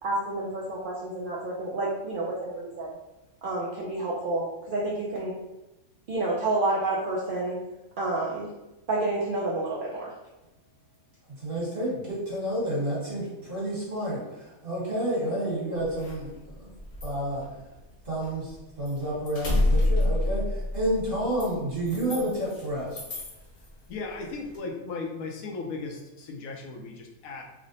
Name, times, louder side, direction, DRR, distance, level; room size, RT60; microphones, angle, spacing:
voice 1, 0.0-3.0 3.4-5.3 6.1-7.6 8.0-8.5 8.9-10.1, right 2 dB, 75° right, -4 dB, 0.4 m, -29 dB
voice 2, 11.4-16.3 16.6-16.7 17.0-17.4 18.0-23.0, right 1 dB, 40° right, -7 dB, 1.5 m, -30 dB
sound 1, 15.7-18.6 18.8-22.6 22.9-23.7 24.1-24.6, left 1 dB, 40° left, 0.9 m, -28 dB
voice 3, 23.9-27.4, left 3 dB, 75° left, 2 dB, 1.0 m, -36 dB
3.1 x 2.0 x 3.9 m, 0.99 s
omnidirectional pair, 1.5 m